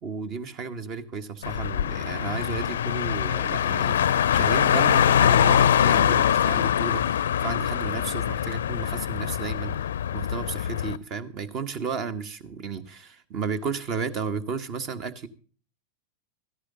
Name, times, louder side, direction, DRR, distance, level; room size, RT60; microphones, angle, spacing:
voice 1, 0.0-9.8 10.1-15.3, right 5 dB, 35° right, 13 dB, 1.4 m, -33 dB
Car, 1.4-11.0, left 9 dB, 65° left, 0.5 m, -23 dB
17.0 x 14.0 x 3.8 m, 0.42 s
figure-of-eight pair, 90°, 0 cm